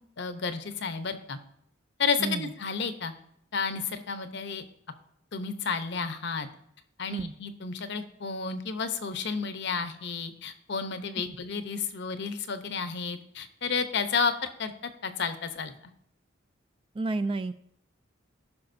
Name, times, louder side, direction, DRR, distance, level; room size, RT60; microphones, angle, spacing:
voice 1, 0.2-1.4 2.0-3.1 3.5-4.6 5.3-6.5 7.0-14.7 15.0-15.7, left 5 dB, 60° left, 9 dB, 0.7 m, -31 dB
voice 2, 2.2-2.5 7.1-7.3 16.9-17.5, right 3 dB, 25° right, 12 dB, 0.3 m, -30 dB
15.0 x 5.7 x 2.6 m, 0.71 s
head